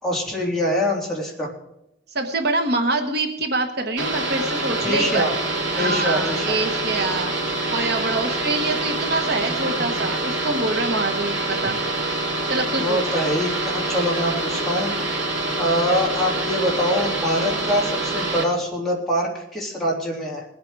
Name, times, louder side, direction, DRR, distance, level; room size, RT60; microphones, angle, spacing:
voice 1, 0.0-1.5 4.8-5.3 5.8-6.5 10.0-10.1 12.7-14.9 15.6-20.4, equal, ahead, -4 dB, 3.2 m, -24 dB
voice 2, 2.1-5.3 5.7-7.3 7.7-11.8 12.5-13.0, right 2 dB, 55° right, 5 dB, 1.1 m, -25 dB
sound 1, 4.0-18.4, right 2 dB, 80° right, 2.9 m, -26 dB
20.5 x 8.4 x 4.7 m, 0.84 s
head